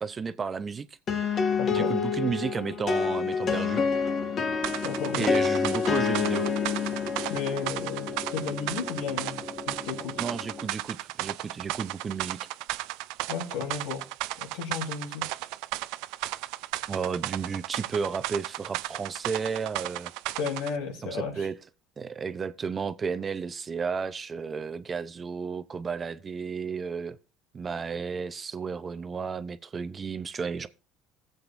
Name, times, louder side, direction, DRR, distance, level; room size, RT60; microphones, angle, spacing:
voice 1, 0.0-0.9 1.7-3.8 5.1-6.5 10.2-12.4 16.9-20.1 21.0-21.6 22.0-27.2 27.5-30.7, right 5 dB, 25° right, 0.6 m, -33 dB
sound 1, 1.1-10.7, left 5 dB, 35° left, 1.3 m, -29 dB
voice 2, 1.6-1.9 4.8-5.3 7.3-10.1 13.3-14.0 14.4-15.3 20.4-21.5, left 6 dB, 85° left, 3.6 m, -34 dB
sound 2, 4.6-20.8, right 17 dB, 80° right, 0.4 m, -35 dB
15.5 x 7.8 x 2.6 m
cardioid pair, 120°, 0 cm